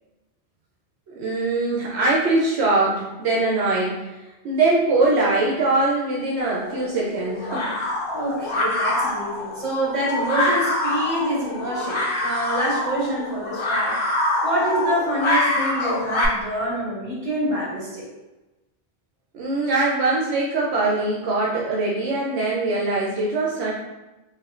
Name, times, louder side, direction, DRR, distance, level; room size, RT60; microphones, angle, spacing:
voice 1, 1.1-4.1 4.4-7.8 19.3-23.7, right 2 dB, 75° right, -4 dB, 0.8 m, -22 dB
sound 1, 6.4-16.3, left 1 dB, 50° left, 0.3 m, -25 dB
voice 2, 8.1-14.0 14.4-18.1, right 1 dB, 30° right, -6 dB, 1.1 m, -26 dB
4.3 x 2.1 x 2.4 m, 1.1 s
omnidirectional pair, 1.2 m